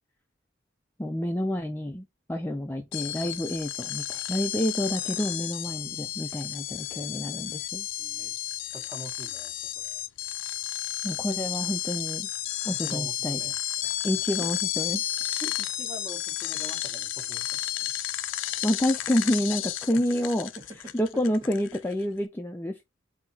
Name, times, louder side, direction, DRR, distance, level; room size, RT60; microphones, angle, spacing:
voice 1, 1.0-7.9 11.0-12.3 12.7-13.4 14.0-15.0 18.6-20.5 20.9-22.8, equal, 10° left, 0.4 m, -28 dB
sound 1, 2.9-22.1, left 13 dB, 90° left, 0.4 m, -32 dB
voice 2, 8.0-8.3 8.6-10.0 12.7-13.9 14.4-14.5 15.4-17.6 19.0-19.1 19.9-20.0 20.5-20.6, right 2 dB, 15° right, 1.2 m, -45 dB
3.9 x 2.8 x 4.2 m
head